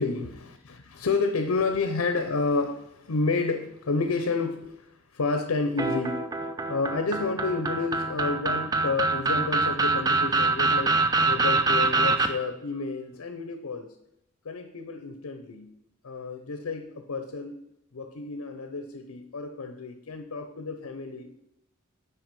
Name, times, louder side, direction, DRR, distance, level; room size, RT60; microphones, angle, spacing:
voice 1, 0.0-6.3 6.7-11.0 11.3-13.9 14.4-15.7 16.0-17.6 17.9-21.3, left 3 dB, 90° left, 7 dB, 0.6 m, -30 dB
sound 1, 5.8-12.3, right 3 dB, 20° right, 0.4 m, -24 dB
6.0 x 4.8 x 5.3 m, 0.79 s
head